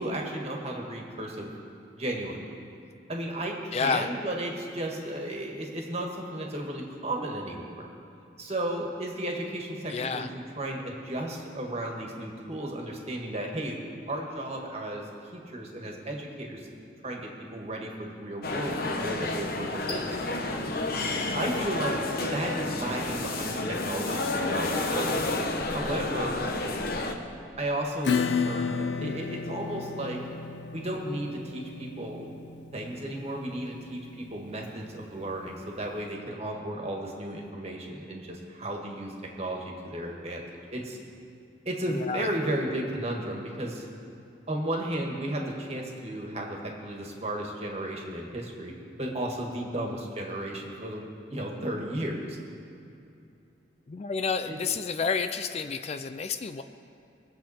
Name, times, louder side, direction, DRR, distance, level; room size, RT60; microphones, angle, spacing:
voice 1, 0.0-1.5 2.0-2.4 3.1-7.8 8.4-10.3 10.6-13.8 14.1-15.1 15.3-16.6 17.0-20.2 21.3-25.1 25.7-26.5 27.6-30.2 30.7-32.3 32.7-40.4 40.7-41.0 41.7-43.8 44.5-52.4 54.5-54.6, right 1 dB, 35° right, 0 dB, 1.8 m, -34 dB
voice 2, 3.7-4.1 9.9-10.3 21.3-21.7 26.1-26.4 41.9-42.3 49.6-50.0 53.9-56.6, left 5 dB, 35° left, 9 dB, 0.4 m, -31 dB
sound 1, 18.4-27.1, left 2 dB, 60° left, 1.0 m, -30 dB
Acoustic guitar / Strum, 28.0-35.3, left 5 dB, 80° left, 0.6 m, -33 dB
21.5 x 7.7 x 4.3 m, 2.6 s
head